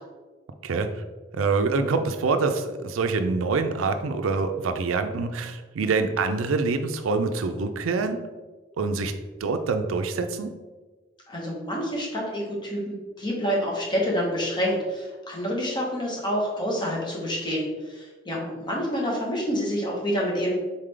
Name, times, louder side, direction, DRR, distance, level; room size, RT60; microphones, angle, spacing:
voice 1, 1.3-8.2 8.8-9.1 9.4-10.5, right 4 dB, 85° right, 8 dB, 0.4 m, -25 dB
voice 2, 11.3-20.5, equal, 25° left, -3 dB, 1.0 m, -28 dB
4.0 x 3.7 x 3.3 m, 1.3 s
head